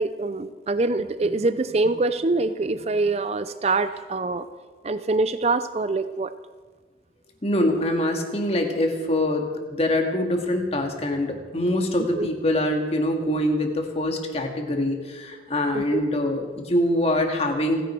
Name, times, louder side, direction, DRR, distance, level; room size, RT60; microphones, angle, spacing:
voice 1, 0.0-4.5 4.8-6.3 12.1-12.3 15.7-16.0, right 3 dB, 35° right, 12 dB, 0.5 m, -24 dB
voice 2, 7.4-17.8, left 1 dB, 35° left, 3 dB, 2.0 m, -24 dB
28.5 x 10.0 x 4.6 m, 1.5 s
head